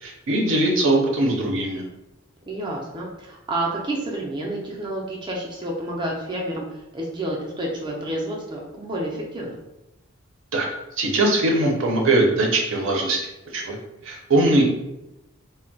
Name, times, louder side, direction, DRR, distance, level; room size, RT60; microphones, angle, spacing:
voice 1, 0.0-1.8 10.5-10.7 11.0-13.2 13.5-13.8 14.0-14.6, right 2 dB, 70° right, 0 dB, 0.6 m, -21 dB
voice 2, 2.4-9.6, right 1 dB, 20° right, -2 dB, 0.4 m, -29 dB
2.2 x 2.1 x 3.8 m, 0.92 s
head